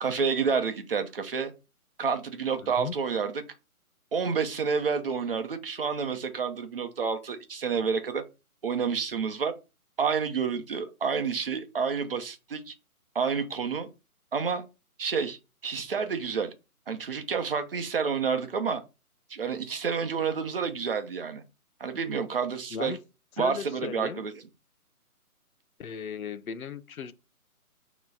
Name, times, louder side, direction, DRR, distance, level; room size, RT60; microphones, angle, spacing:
voice 1, 0.0-1.5 2.0-3.3 4.1-8.2 8.6-9.5 10.0-12.7 13.1-13.9 14.3-14.6 15.0-15.4 15.6-16.5 16.9-18.8 19.3-21.4 21.8-22.9 23.4-24.3, right 5 dB, 40° right, 0.8 m, -29 dB
voice 2, 2.6-3.0 22.7-23.0 23.4-24.2 25.8-27.1, left 7 dB, 65° left, 0.7 m, -36 dB
6.5 x 3.1 x 4.7 m
hypercardioid pair, 165°, 45 cm